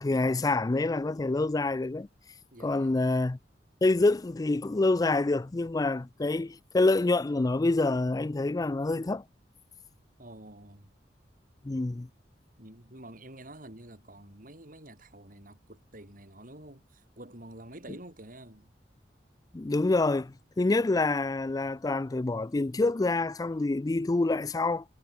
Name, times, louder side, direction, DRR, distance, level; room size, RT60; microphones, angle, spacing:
voice 1, 0.0-2.1 2.6-3.4 3.8-9.2 11.6-12.1 19.5-24.8, left 2 dB, 20° left, 0.4 m, -27 dB
voice 2, 2.5-3.0 10.2-10.9 12.6-18.7, right 1 dB, 50° right, 7.2 m, -48 dB
head